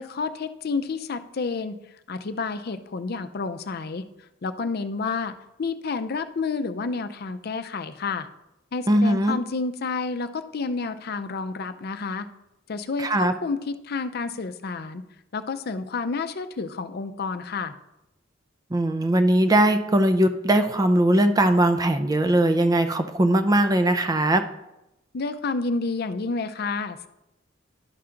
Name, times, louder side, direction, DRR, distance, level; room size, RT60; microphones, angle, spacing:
voice 1, 0.0-1.8 2.1-4.1 4.4-8.3 8.7-12.3 12.7-15.0 15.3-17.8 25.1-27.1, left 4 dB, 55° left, 10 dB, 0.5 m, -30 dB
voice 2, 8.9-9.4 13.0-13.3 18.7-24.4, right 1 dB, 20° right, 8 dB, 0.4 m, -20 dB
11.5 x 5.7 x 3.8 m, 0.91 s
head